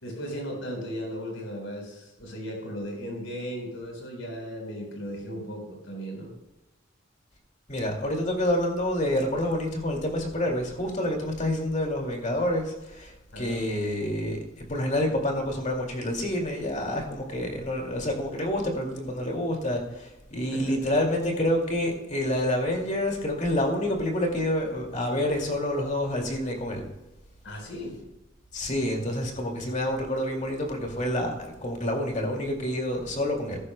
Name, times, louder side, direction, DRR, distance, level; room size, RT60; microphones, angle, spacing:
voice 1, 0.0-6.3 13.3-13.6 20.5-20.9 27.4-28.0, equal, 90° left, 1 dB, 4.2 m, -36 dB
voice 2, 7.7-14.4 14.7-26.8 28.5-33.6, left 1 dB, 40° left, 1 dB, 2.3 m, -28 dB
15.0 x 11.5 x 2.2 m, 0.99 s
head